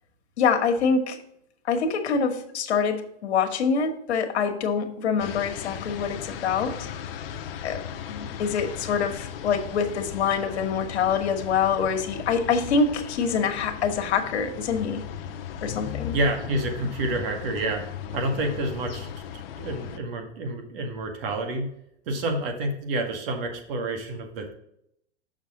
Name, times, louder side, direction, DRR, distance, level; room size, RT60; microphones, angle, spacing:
voice 1, 0.4-1.2 1.6-6.9 7.6-7.8 8.1-15.0 15.6-16.1, left 5 dB, 70° left, 5 dB, 1.3 m, -25 dB
sound 1, 5.2-20.0, left 8 dB, 55° left, 0.8 m, -37 dB
voice 2, 16.1-17.8 18.1-19.2 19.6-21.7 22.1-24.5, right 2 dB, 55° right, 4 dB, 1.8 m, -28 dB
6.6 x 5.9 x 3.7 m, 0.75 s
hypercardioid pair, 130°, 34 cm